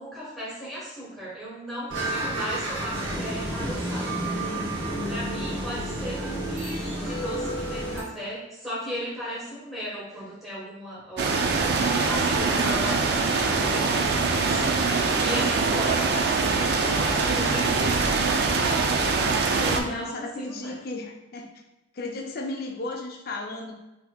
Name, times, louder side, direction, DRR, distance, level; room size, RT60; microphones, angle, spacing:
voice 1, 0.0-4.2 5.0-11.7 12.0-14.8 15.2-18.2 19.7-20.8, equal, ahead, -8 dB, 1.2 m, -37 dB
sound 1, 1.9-8.0, right 1 dB, 70° right, 0.8 m, -30 dB
sound 2, 11.2-19.8, right 4 dB, 55° right, 0.3 m, -23 dB
voice 2, 19.6-21.5 21.9-23.7, left 2 dB, 50° left, 2 dB, 0.5 m, -34 dB
4.2 x 2.8 x 2.2 m, 0.98 s
head